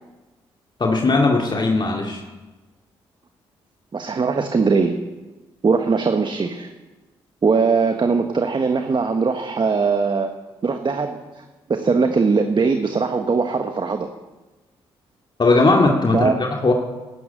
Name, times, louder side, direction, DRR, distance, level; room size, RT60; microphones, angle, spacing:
voice 1, 0.8-2.2 15.4-16.7, left 3 dB, 40° left, 0 dB, 2.4 m, -18 dB
voice 2, 3.9-5.0 5.6-6.7 7.4-10.3 10.6-11.4 11.7-14.1 16.1-16.4, right 4 dB, 40° right, 6 dB, 1.4 m, -20 dB
12.5 x 11.5 x 8.7 m, 1.2 s
supercardioid pair, 45°, 12 cm